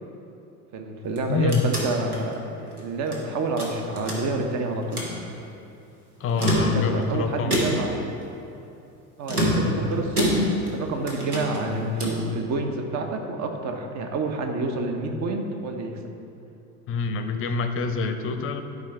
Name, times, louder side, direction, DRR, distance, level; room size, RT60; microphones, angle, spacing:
voice 1, 0.7-5.1 6.5-7.9 9.2-16.0, right 2 dB, 35° right, 3 dB, 1.0 m, -28 dB
sound 1, 1.0-3.2 3.6-4.5 4.8-5.2 6.2-7.1 7.5-8.0 9.2-10.8 11.1-12.3, equal, 85° right, 1.3 m, -26 dB
voice 2, 1.3-1.6 6.2-7.6 16.9-18.6, left 4 dB, 30° left, 6 dB, 0.7 m, -26 dB
12.0 x 5.1 x 3.3 m, 2.7 s
figure-of-eight pair, 65°, 44 cm